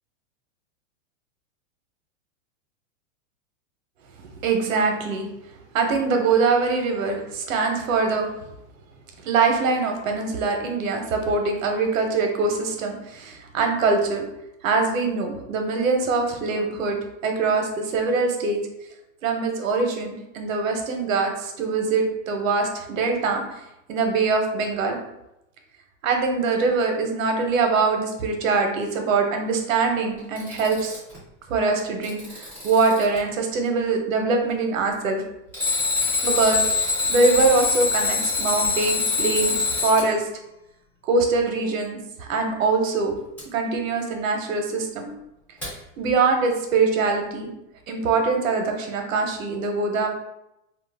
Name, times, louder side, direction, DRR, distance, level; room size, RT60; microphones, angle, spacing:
voice 1, 4.4-5.3 5.7-8.3 9.2-14.3 14.6-18.6 19.2-23.4 23.9-25.0 26.0-31.0 31.5-35.2 36.2-40.2 41.1-43.1 43.5-45.1 46.0-47.5 47.9-50.1, right 4 dB, 85° right, 3 dB, 0.8 m, -23 dB
Alarm, 30.2-31.2 31.8-33.2 35.5-40.1 43.4-43.5 45.6-45.7, left 4 dB, 5° left, 0.3 m, -24 dB
2.5 x 2.1 x 3.3 m, 0.87 s
supercardioid pair, 155°, 39 cm